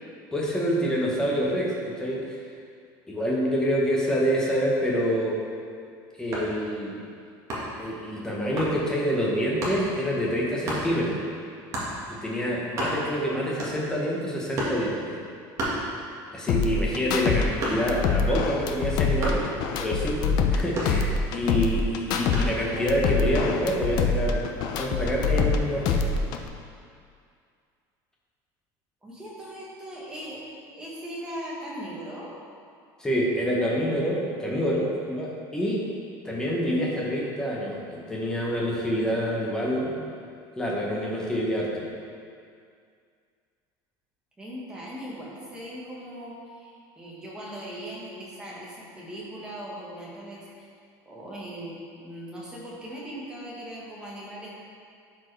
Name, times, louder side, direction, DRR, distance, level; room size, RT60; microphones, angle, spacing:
voice 1, 0.3-2.4 3.1-5.4 6.2-7.0 7.8-11.2 12.2-15.2 16.3-19.5 19.8-24.5 24.7-26.2 33.0-35.8 36.2-40.0 40.6-41.9, equal, 5° left, -4 dB, 1.0 m, -27 dB
sound 1, 6.3-6.6 7.5-7.8 8.6-8.8 9.6-9.8 10.7-10.9 11.7-12.0 12.4-12.5 12.7-13.2 13.6-14.0 14.6-14.9 15.6-16.3 16.7-18.1 19.2-19.5 20.8-21.4 22.3-22.6, right 1 dB, 35° right, 1.5 m, -31 dB
sound 2, 16.5-17.4 17.7-20.6 20.9-22.4 22.7-25.6 25.9-26.5, left 5 dB, 50° left, 0.5 m, -25 dB
voice 2, 29.0-30.4 30.7-32.3 44.4-50.7 51.0-54.6, equal, 10° right, -6 dB, 1.3 m, -39 dB
12.0 x 4.5 x 3.3 m, 2.3 s
cardioid pair, 180°, 9 cm